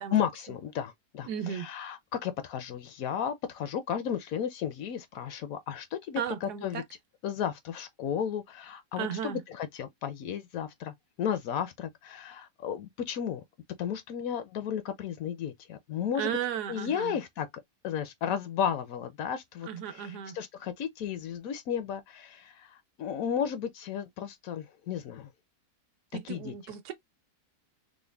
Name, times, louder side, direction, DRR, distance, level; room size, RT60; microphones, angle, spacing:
voice 1, 0.1-6.8 7.2-13.4 13.8-16.3 16.7-17.5 17.8-25.3 26.2-26.5, left 8 dB, 70° left, 0.9 m, -34 dB
voice 2, 1.3-1.7 6.2-6.8 9.0-9.4 16.1-17.2 19.7-20.4 26.1-26.9, right 9 dB, 80° right, 1.3 m, -35 dB
3.7 x 2.1 x 3.3 m
omnidirectional pair, 1.7 m